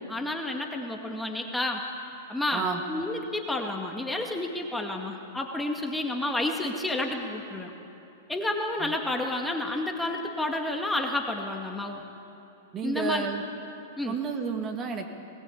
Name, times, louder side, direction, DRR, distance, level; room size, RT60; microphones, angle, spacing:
voice 1, 0.0-1.8 2.3-7.7 8.3-12.0 12.8-13.2 14.0-14.1, left 2 dB, 5° left, 1 dB, 2.0 m, -30 dB
voice 2, 12.7-13.4 14.0-15.1, right 5 dB, 30° right, 4 dB, 2.5 m, -31 dB
21.0 x 20.0 x 8.6 m, 2.9 s
hypercardioid pair, 115°, 0 cm